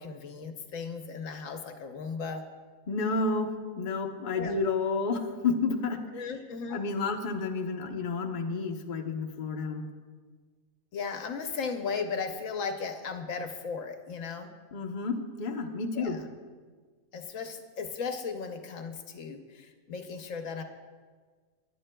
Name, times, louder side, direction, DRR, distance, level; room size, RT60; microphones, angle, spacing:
voice 1, 0.0-2.4 4.3-4.5 6.1-6.8 10.9-14.5 16.0-16.2 17.1-20.6, left 5 dB, 70° left, 6 dB, 1.1 m, -36 dB
voice 2, 2.9-6.2 6.7-9.8 14.7-16.2, left 4 dB, 40° left, 3 dB, 0.8 m, -30 dB
18.0 x 10.0 x 2.2 m, 1.5 s
omnidirectional pair, 1.4 m